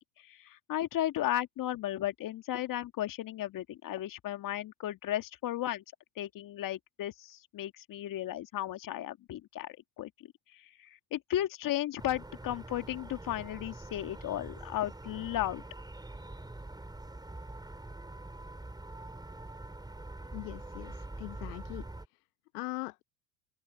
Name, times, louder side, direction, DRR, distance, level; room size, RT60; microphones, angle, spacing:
voice 1, 0.4-5.8 6.2-10.1 11.1-15.6, left 13 dB, 40° left, 1.9 m, -34 dB
sound 1, 12.0-22.1, right 2 dB, 10° right, 5.6 m, -45 dB
voice 2, 20.3-21.9 22.5-23.0, left 26 dB, 65° left, 1.2 m, -41 dB
open air
hypercardioid pair, 80°, 49 cm